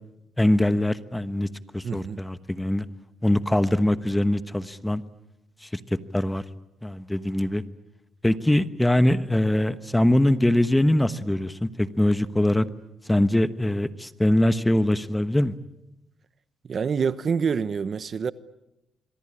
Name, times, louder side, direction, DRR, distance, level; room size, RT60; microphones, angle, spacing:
voice 1, 0.4-1.5 1.7-2.8 3.2-5.0 5.6-5.8 6.1-6.4 6.8-7.6 8.2-12.7 13.1-15.5, left 1 dB, 10° left, 1.1 m, -22 dB
voice 2, 1.8-2.2 16.6-18.3, right 6 dB, 50° right, 1.0 m, -26 dB
26.5 x 23.0 x 8.8 m
cardioid pair, 90°, 0 cm